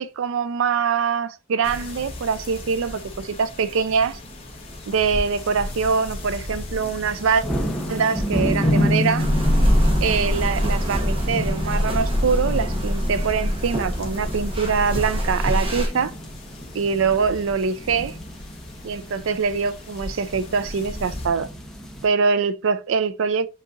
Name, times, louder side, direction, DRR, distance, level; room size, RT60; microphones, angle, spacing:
voice 1, 0.0-4.2 4.9-7.5 7.9-9.3 10.0-16.1 16.7-18.2 18.8-21.5 22.0-23.5, right 5 dB, 75° right, 0.4 m, -23 dB
sound 1, 1.6-21.3, left 1 dB, 30° left, 1.0 m, -38 dB
sound 2, 4.9-5.2 5.7-5.9 6.3-22.1, equal, ahead, 0.8 m, -30 dB
sound 3, 9.2-15.9, equal, 25° right, 0.9 m, -23 dB
7.3 x 2.8 x 2.5 m
head